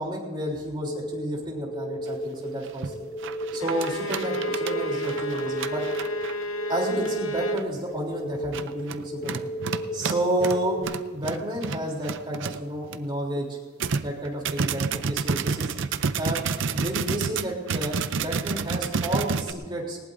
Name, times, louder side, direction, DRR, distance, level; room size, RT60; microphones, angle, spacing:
voice 1, 0.0-3.1 3.5-5.8 6.7-9.5 9.9-10.8 11.1-13.6 14.0-15.8 16.2-16.4 16.7-20.0, right 1 dB, 25° right, -2 dB, 3.3 m, -30 dB
sound 1, 0.8-10.8, equal, 65° left, 4.9 m, -35 dB
sound 2, 2.1-2.2 2.7-2.9 3.2-6.4 7.1-7.2 7.6-7.8 8.4-13.0 13.4-13.5 13.8-19.5, right 5 dB, 65° right, 0.6 m, -29 dB
Bowed string instrument, 3.6-7.7, right 1 dB, 85° left, 0.9 m, -31 dB
19.5 x 18.5 x 2.6 m, 1.5 s
head